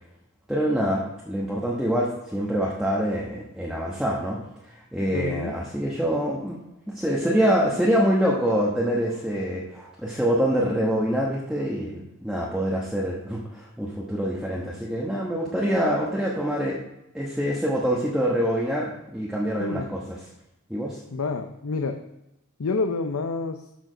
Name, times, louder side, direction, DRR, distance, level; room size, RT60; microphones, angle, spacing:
voice 1, 0.5-6.6 6.9-16.8 17.1-20.2 20.7-21.0, equal, 5° right, -4 dB, 1.1 m, -25 dB
voice 2, 5.1-5.6 19.6-19.9 21.1-22.0 22.6-23.6, left 3 dB, 80° left, 6 dB, 0.6 m, -28 dB
12.5 x 5.0 x 5.0 m, 0.87 s
head